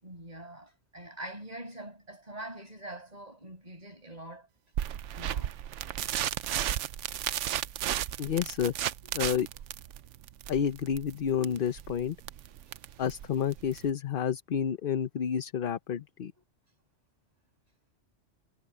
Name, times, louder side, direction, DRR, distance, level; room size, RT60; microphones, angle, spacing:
voice 1, 0.0-4.5 4.8-5.6 9.0-9.2 16.4-16.5, right 1 dB, 35° right, 6.3 m, -44 dB
sound 1, 4.8-13.9, right 11 dB, 85° right, 1.0 m, -34 dB
voice 2, 8.2-8.7 9.1-9.5 10.5-12.2 13.0-16.3, left 8 dB, 55° left, 0.8 m, -30 dB
omnidirectional pair, 1.2 m